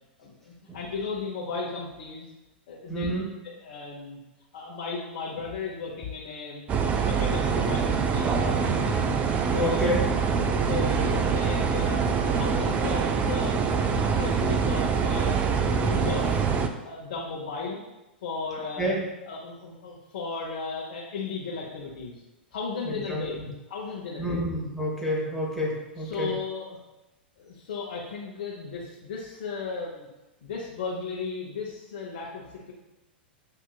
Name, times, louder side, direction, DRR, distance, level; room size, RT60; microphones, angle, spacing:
voice 1, 0.2-2.3 2.7-3.1 3.6-4.2 4.5-8.9 9.5-10.0 10.3-12.0 12.3-13.6 14.0-15.4 15.7-16.4 16.8-17.8 18.2-18.9 19.3-22.2 22.5-23.4 23.7-24.4 26.0-26.8 27.4-30.1 30.4-32.7, left 4 dB, 55° left, -4 dB, 0.9 m, -35 dB
voice 2, 2.9-3.3 9.6-10.1 18.8-19.1 22.8-23.5 24.2-26.3, equal, ahead, -6 dB, 1.2 m, -29 dB
sound 1, 6.7-16.7, right 5 dB, 25° right, 0.4 m, -25 dB
7.4 x 2.8 x 2.4 m, 1.0 s
figure-of-eight pair, 95°, 6 cm